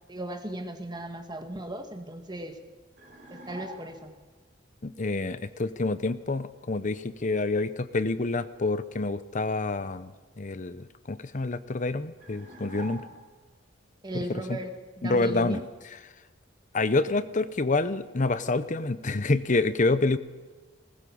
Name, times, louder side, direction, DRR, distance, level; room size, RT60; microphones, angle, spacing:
voice 1, 0.1-2.6 3.3-4.1 14.0-14.7 15.0-15.6, right 1 dB, 20° right, 6 dB, 1.8 m, -36 dB
sound 1, 3.0-4.1 12.2-13.5, right 2 dB, 40° right, 7.0 m, -45 dB
voice 2, 4.8-13.0 14.1-14.6 15.0-16.0 16.7-20.2, left 3 dB, 40° left, 14 dB, 0.8 m, -28 dB
20.0 x 19.5 x 7.1 m, 1.3 s
head